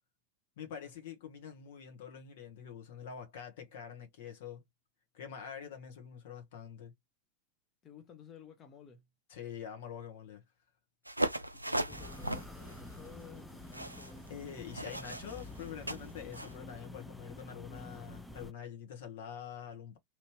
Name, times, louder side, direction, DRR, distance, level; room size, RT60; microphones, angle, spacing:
voice 1, 0.6-4.6 5.1-6.9 9.3-10.4 14.3-20.0, left 8 dB, 55° left, 1.1 m, -45 dB
voice 2, 7.8-9.0 11.5-14.3, left 6 dB, 30° left, 0.9 m, -54 dB
sound 1, 11.1-16.5, right 1 dB, 85° right, 0.4 m, -38 dB
sound 2, 11.9-18.5, left 1 dB, 5° left, 0.4 m, -49 dB
3.0 x 2.7 x 3.0 m
figure-of-eight pair, 90°, 0 cm